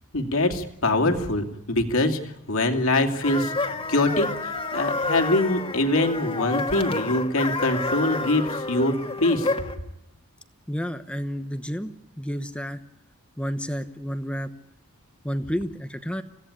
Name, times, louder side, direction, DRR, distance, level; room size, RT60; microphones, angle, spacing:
voice 1, 0.1-9.5, left 2 dB, 65° left, 4 dB, 2.8 m, -24 dB
sound 1, 3.2-9.8, left 3 dB, 25° left, 2.1 m, -29 dB
voice 2, 10.7-12.8 13.4-14.5 15.2-16.2, equal, 5° left, 9 dB, 1.0 m, -30 dB
26.5 x 17.0 x 10.0 m, 0.85 s
head